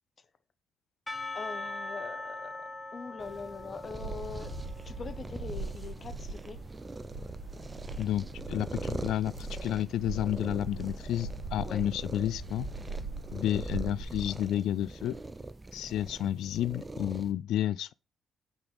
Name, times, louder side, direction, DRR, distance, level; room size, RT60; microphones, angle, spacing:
Percussion / Church bell, 1.1-5.5, left 2 dB, 10° left, 0.9 m, -41 dB
voice 1, 1.3-4.5 4.9-6.6 11.6-11.8, left 5 dB, 40° left, 0.8 m, -42 dB
sound 1, 3.2-17.3, right 2 dB, 20° right, 0.6 m, -43 dB
sound 2, 3.8-14.0, right 3 dB, 70° right, 2.3 m, -41 dB
voice 2, 8.0-12.7 13.3-15.2 15.7-17.9, left 12 dB, 80° left, 0.3 m, -31 dB
5.8 x 4.0 x 5.2 m
cardioid pair, 90°, 0 cm